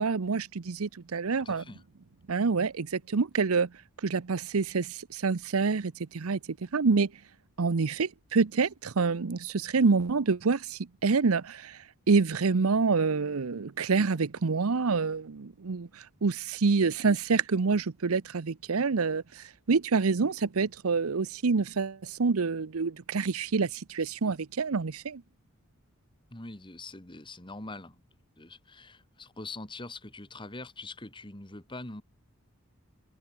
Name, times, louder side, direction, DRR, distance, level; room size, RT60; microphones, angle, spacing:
voice 1, 0.0-1.6 2.3-3.7 4.0-6.4 6.7-7.1 7.6-11.8 12.1-25.2, right 4 dB, 85° right, 0.7 m, -27 dB
voice 2, 1.3-1.8 26.3-28.0 28.4-32.0, left 2 dB, 25° left, 2.4 m, -43 dB
head